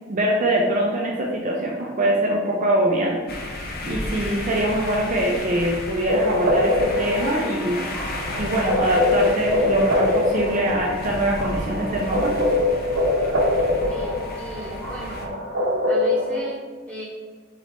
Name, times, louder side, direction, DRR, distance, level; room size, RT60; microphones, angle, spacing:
voice 1, 0.1-7.9 8.4-12.3, right 1 dB, 40° right, -2 dB, 0.5 m, -23 dB
sound 1, 3.3-15.3, left 2 dB, 50° left, 0.5 m, -33 dB
sound 2, 6.1-16.4, left 1 dB, 80° right, 0.7 m, -24 dB
voice 2, 13.9-15.3 15.9-17.0, right 1 dB, 5° left, -8 dB, 1.4 m, -36 dB
3.7 x 3.2 x 3.1 m, 1.4 s
head